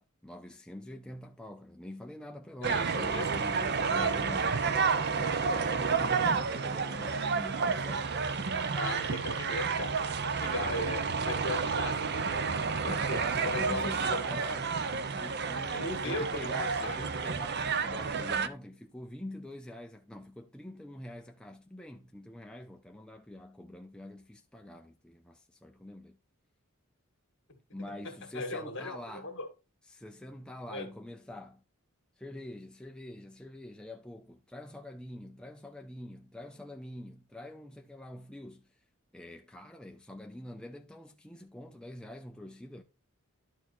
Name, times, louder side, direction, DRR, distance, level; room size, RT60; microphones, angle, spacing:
voice 1, 0.0-4.8 5.2-8.2 12.8-14.8 15.1-26.2 27.7-29.4 29.9-31.6 32.2-38.7 39.1-42.8, left 1 dB, 5° left, 0.5 m, -45 dB
voice 2, 2.6-3.4 3.9-4.1 8.8-12.4 12.8-14.2 15.7-17.1 28.3-29.5 30.7-30.9, left 2 dB, 55° left, 1.9 m, -37 dB
sound 1, 2.6-18.5, right 5 dB, 50° right, 0.7 m, -30 dB
11.5 x 4.6 x 4.3 m
head